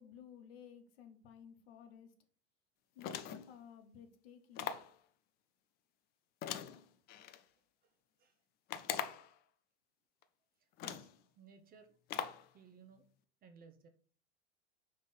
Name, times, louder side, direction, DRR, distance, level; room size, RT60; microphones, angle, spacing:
voice 1, 0.0-2.1 2.9-4.7, left 8 dB, 60° left, 7 dB, 1.1 m, -56 dB
sound 1, 3.0-3.6 4.6-5.0 6.4-7.4 8.7-9.3 10.2-10.3 10.8-11.2 12.1-12.5, left 9 dB, 30° left, 0.4 m, -41 dB
voice 2, 10.6-12.0 12.5-13.1 13.4-13.9, right 5 dB, 25° right, 7 dB, 0.8 m, -59 dB
5.3 x 3.2 x 5.5 m, 0.44 s
figure-of-eight pair, 90°, 34 cm